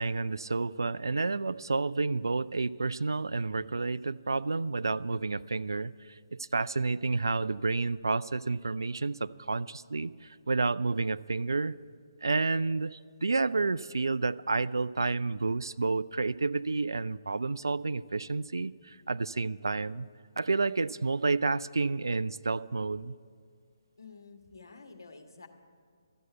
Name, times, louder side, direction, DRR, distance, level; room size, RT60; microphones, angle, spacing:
voice 1, 0.0-5.9 6.3-10.1 10.5-11.7 12.2-20.1 20.4-23.1, right 3 dB, 75° right, 17 dB, 0.3 m, -30 dB
voice 2, 24.0-25.5, left 4 dB, 70° left, 5 dB, 1.5 m, -50 dB
12.5 x 7.8 x 8.9 m, 2.1 s
figure-of-eight pair, 140°, 2 cm